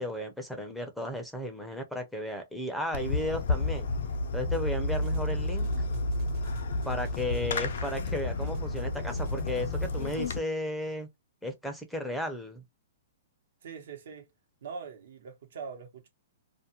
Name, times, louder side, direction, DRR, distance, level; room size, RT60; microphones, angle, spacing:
voice 1, 0.0-3.9 4.3-5.9 6.8-11.1 11.4-12.6, left 1 dB, ahead, 0.5 m, -34 dB
Fireworks, 2.9-10.4, left 2 dB, 70° left, 0.5 m, -31 dB
sound 1, 4.5-5.3 5.6-8.2 8.4-10.1, right 3 dB, 40° right, 0.8 m, -54 dB
voice 2, 13.6-14.3 14.6-16.1, right 5 dB, 70° right, 0.9 m, -42 dB
2.4 x 2.1 x 2.8 m
hypercardioid pair, 145°, 0 cm